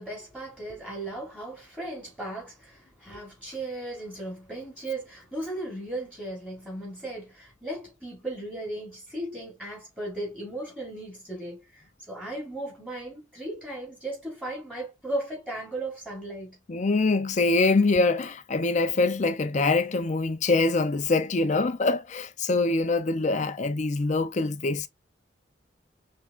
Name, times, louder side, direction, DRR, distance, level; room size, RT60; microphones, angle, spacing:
voice 1, 0.0-16.6, right 1 dB, 5° right, 3.1 m, -36 dB
voice 2, 16.7-24.9, left 3 dB, 40° left, 0.5 m, -24 dB
5.7 x 3.6 x 2.4 m
head